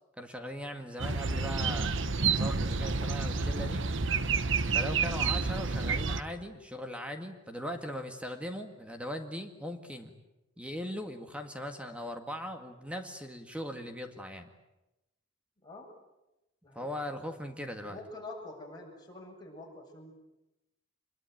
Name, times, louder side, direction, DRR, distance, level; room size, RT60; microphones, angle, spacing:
voice 1, 0.2-1.9 2.3-3.8 4.7-10.1 10.6-14.5 16.8-18.0, equal, 5° right, 5 dB, 1.9 m, -39 dB
sound 1, 1.0-6.2, right 4 dB, 65° right, 1.2 m, -29 dB
voice 2, 17.8-20.1, left 2 dB, 20° left, -1 dB, 7.4 m, -46 dB
26.0 x 22.0 x 9.3 m, 0.95 s
head